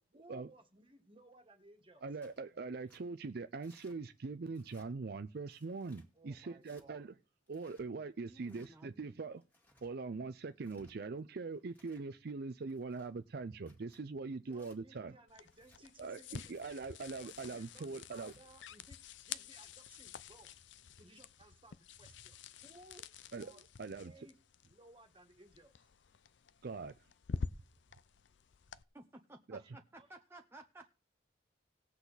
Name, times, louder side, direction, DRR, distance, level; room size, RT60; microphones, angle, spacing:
voice 1, 0.0-2.1 6.1-7.1 14.5-16.6 17.2-20.5 21.0-23.0 23.3-24.4 24.7-25.9 29.6-29.7 30.0-30.1, right 1 dB, 30° right, 1.7 m, -61 dB
voice 2, 2.0-7.1 7.5-9.4 9.8-15.1 16.0-18.3 23.3-23.5 23.8-24.1 26.6-26.9 29.5-29.6, right 4 dB, 55° right, 0.5 m, -42 dB
Tearing, 2.2-2.4 2.9-3.0 3.6-4.0 4.5-4.9 5.5-6.1 6.6-6.8 7.5-7.8 8.4-8.7 9.4-9.9 10.5-10.9 11.5-12.1 12.6-13.1 13.6-14.0 14.5-14.8 15.5-15.8 16.3-16.6 17.2-17.4 18.0-18.4, left 1 dB, 10° left, 2.0 m, -67 dB
voice 3, 8.3-8.9 28.9-30.9, right 2 dB, 15° right, 0.8 m, -55 dB
sound 1, 15.3-28.8, left 5 dB, 70° left, 0.5 m, -48 dB
18.0 x 8.1 x 4.0 m
head